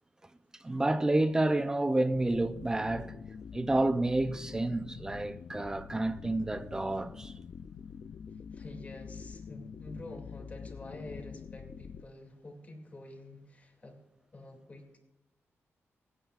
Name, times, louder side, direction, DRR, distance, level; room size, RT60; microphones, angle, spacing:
voice 1, 0.6-3.1 3.5-7.3, right 2 dB, 15° right, 0.5 m, -29 dB
sound 1, 2.1-12.0, left 6 dB, 60° left, 0.4 m, -46 dB
voice 2, 8.5-14.0 14.3-15.0, left 2 dB, 30° left, 2.4 m, -48 dB
27.0 x 9.1 x 2.4 m
wide cardioid pair, 165°, 5 cm